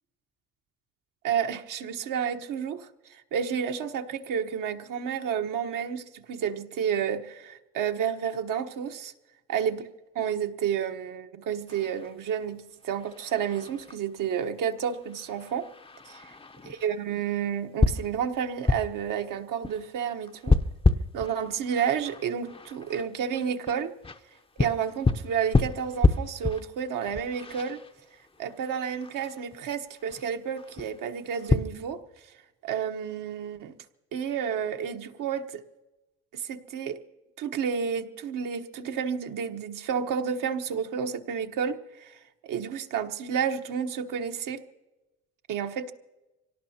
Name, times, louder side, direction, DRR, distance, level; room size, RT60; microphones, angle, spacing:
voice 1, 1.2-9.1 9.5-9.8 10.1-15.7 16.0-16.2 16.7-20.5 21.1-23.9 24.6-27.8 28.4-32.0 32.6-33.7 34.1-35.6 36.3-37.0 37.4-44.6 45.5-45.9, right 7 dB, 60° right, 5 dB, 1.3 m, -30 dB
sound 1, 11.7-31.6, left 3 dB, 15° left, 0.8 m, -30 dB
25.5 x 17.5 x 2.9 m, 1.0 s
hypercardioid pair, 70°, 36 cm